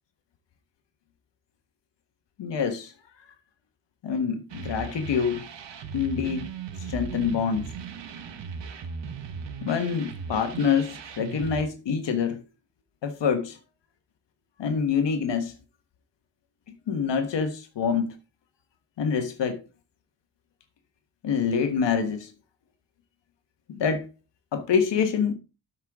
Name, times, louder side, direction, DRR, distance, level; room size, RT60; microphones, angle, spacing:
voice 1, 2.4-2.9 4.0-5.4 5.9-6.5 6.8-7.7 9.6-12.4 13.0-13.6 14.6-15.5 16.9-18.1 19.0-19.6 21.2-22.3 23.7-24.1 24.5-25.3, left 6 dB, 70° left, 1.4 m, -26 dB
sound 1, 4.5-11.6, right 5 dB, 70° right, 1.4 m, -38 dB
12.5 x 5.7 x 3.6 m
wide cardioid pair, 150°, 44 cm